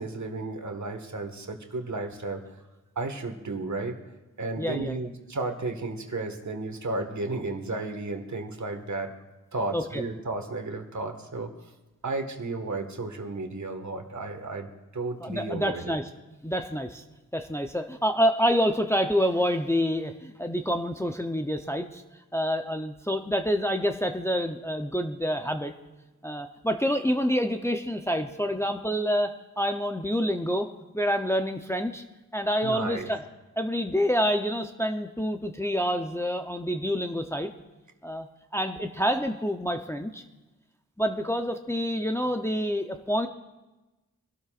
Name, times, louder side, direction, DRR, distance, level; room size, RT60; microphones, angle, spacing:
voice 1, 0.0-2.5 3.0-4.0 4.4-9.1 9.5-11.5 12.0-16.0 32.6-33.1, right 3 dB, 55° right, 4 dB, 1.7 m, -33 dB
voice 2, 4.6-5.0 9.7-10.0 15.2-16.0 16.4-17.0 17.3-22.0 22.3-25.7 26.2-30.7 30.9-32.0 32.3-33.2 33.6-37.5 38.0-38.3 38.5-40.2 41.0-43.3, equal, 5° left, 5 dB, 0.8 m, -27 dB
24.5 x 12.5 x 2.5 m, 1.1 s
cardioid pair, 65°, 35 cm